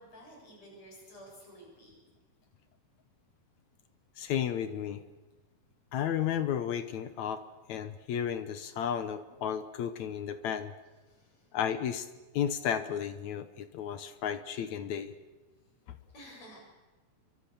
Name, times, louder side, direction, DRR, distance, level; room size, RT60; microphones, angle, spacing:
voice 1, 0.0-2.0 11.1-11.5 16.1-16.7, equal, 50° left, -1 dB, 8.7 m, -52 dB
voice 2, 4.2-5.0 5.9-7.4 7.7-10.7 11.5-12.1 12.3-15.2 15.9-16.0, left 9 dB, 65° left, 11 dB, 2.0 m, -33 dB
28.5 x 23.5 x 6.9 m, 1.2 s
omnidirectional pair, 3.9 m